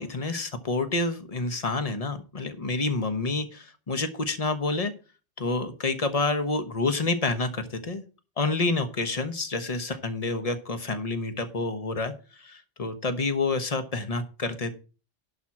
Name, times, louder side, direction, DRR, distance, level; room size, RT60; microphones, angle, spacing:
voice 1, 0.0-4.9 5.4-8.0 8.4-14.7, left 3 dB, 35° left, 9 dB, 1.2 m, -28 dB
11.0 x 4.4 x 7.3 m, 0.35 s
omnidirectional pair, 1.2 m